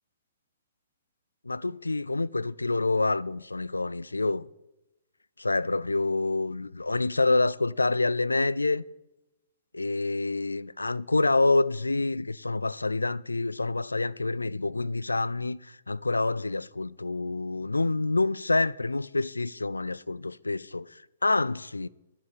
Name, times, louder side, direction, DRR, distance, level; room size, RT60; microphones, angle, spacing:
voice 1, 1.5-4.5 5.4-8.9 9.7-15.6 15.9-20.9 21.2-21.9, left 3 dB, 85° left, 0.3 m, -27 dB
11.0 x 6.7 x 7.5 m
figure-of-eight pair, 120°, 0 cm